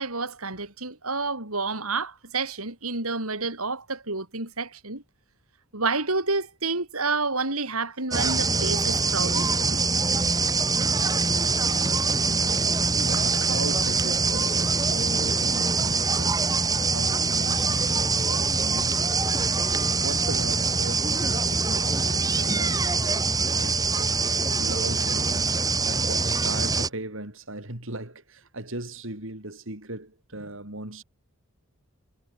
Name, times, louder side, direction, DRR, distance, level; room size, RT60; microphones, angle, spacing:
voice 1, 0.0-5.0 5.7-9.4 9.7-9.8, right 3 dB, 80° right, 6.3 m, -29 dB
sound 1, 8.1-26.9, right 4 dB, 15° right, 2.6 m, -24 dB
voice 2, 13.0-19.1 20.0-25.5 25.9-31.0, right 2 dB, 60° right, 4.9 m, -38 dB
head